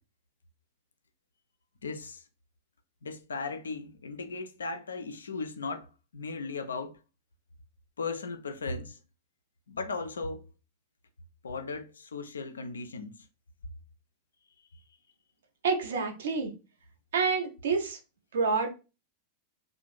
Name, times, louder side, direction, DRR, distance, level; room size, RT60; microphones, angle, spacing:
voice 1, 1.8-2.2 3.0-7.0 8.0-9.0 9.7-10.4 11.4-13.2, left 4 dB, 70° left, 0.3 m, -37 dB
voice 2, 15.6-16.5 17.1-18.0 18.3-18.7, right 4 dB, 60° right, 0.6 m, -28 dB
2.5 x 2.1 x 3.0 m
figure-of-eight pair, 90°, 0 cm